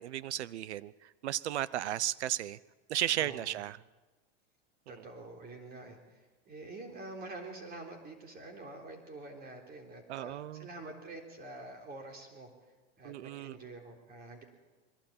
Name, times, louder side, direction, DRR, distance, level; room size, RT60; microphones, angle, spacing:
voice 1, 0.0-2.6 2.9-3.8 10.1-10.7 13.0-13.6, right 13 dB, 85° right, 20 dB, 0.8 m, -35 dB
voice 2, 3.2-3.6 4.9-12.5 13.0-14.4, right 2 dB, 30° right, 3 dB, 3.7 m, -47 dB
22.5 x 19.0 x 8.8 m, 1.2 s
supercardioid pair, 125°, 33 cm